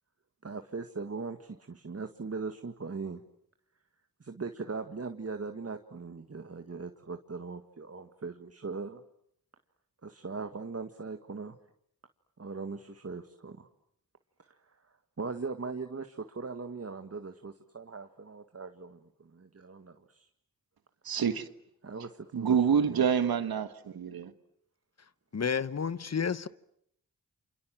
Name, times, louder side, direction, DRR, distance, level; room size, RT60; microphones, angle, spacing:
voice 1, 0.4-3.2 4.2-9.0 10.0-11.6 12.4-13.7 15.2-20.3 21.8-22.6 22.9-23.1, right 4 dB, 40° right, 1.8 m, -40 dB
voice 2, 21.0-21.5 22.3-24.3, right 7 dB, 85° right, 1.7 m, -27 dB
voice 3, 25.3-26.5, left 6 dB, 45° left, 1.1 m, -30 dB
29.0 x 27.0 x 7.6 m
cardioid pair, 55°, 35 cm